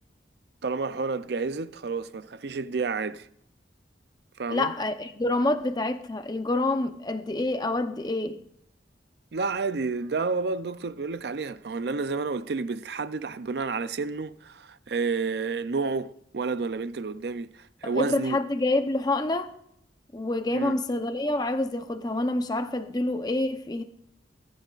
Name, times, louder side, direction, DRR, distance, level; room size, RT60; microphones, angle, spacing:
voice 1, 0.6-3.3 4.4-4.7 9.3-18.4 20.5-20.8, right 4 dB, 60° right, 0.5 m, -30 dB
voice 2, 4.5-8.4 17.8-19.5 20.1-23.8, left 2 dB, 20° left, 0.7 m, -27 dB
22.5 x 10.5 x 2.5 m
head